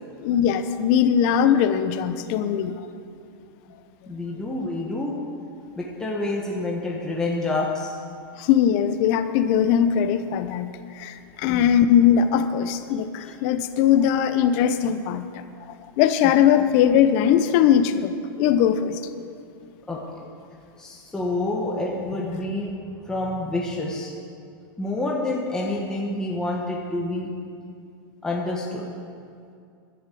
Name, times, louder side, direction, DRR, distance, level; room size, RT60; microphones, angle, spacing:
voice 1, 0.2-2.9 8.4-15.4 16.0-19.0, left 9 dB, 40° left, 10 dB, 0.8 m, -20 dB
voice 2, 4.1-5.2 5.8-8.0 11.4-11.7 12.9-13.3 19.9-20.0 20.8-22.7 23.0-24.1 24.8-27.3 28.2-28.9, left 2 dB, 5° left, -3 dB, 1.2 m, -28 dB
11.5 x 10.5 x 8.4 m, 2.4 s
supercardioid pair, 160°, 12 cm